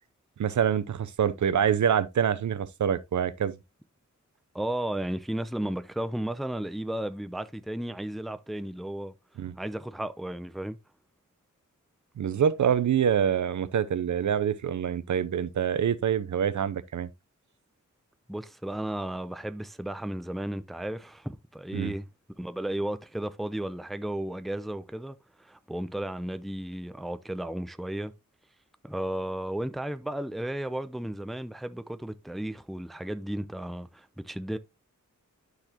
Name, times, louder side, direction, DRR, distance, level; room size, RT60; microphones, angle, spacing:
voice 1, 0.4-3.6 9.4-9.5 12.2-17.1 21.7-21.9, right 8 dB, 70° right, 0.6 m, -26 dB
voice 2, 4.5-9.1 9.6-10.8 18.3-22.1 22.4-28.1 28.8-34.6, right 1 dB, ahead, 0.5 m, -34 dB
12.0 x 4.0 x 2.8 m
wide cardioid pair, 110°, 31 cm